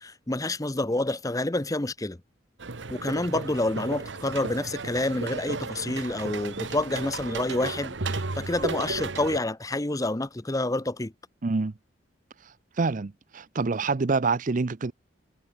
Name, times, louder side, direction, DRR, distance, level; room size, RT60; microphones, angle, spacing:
voice 1, 0.0-2.2 2.9-11.1, left 2 dB, 20° left, 0.8 m, -28 dB
sound 1, 2.6-9.4, right 3 dB, 70° right, 1.2 m, -34 dB
voice 2, 11.4-11.7 12.8-14.9, right 4 dB, 40° right, 0.5 m, -26 dB
head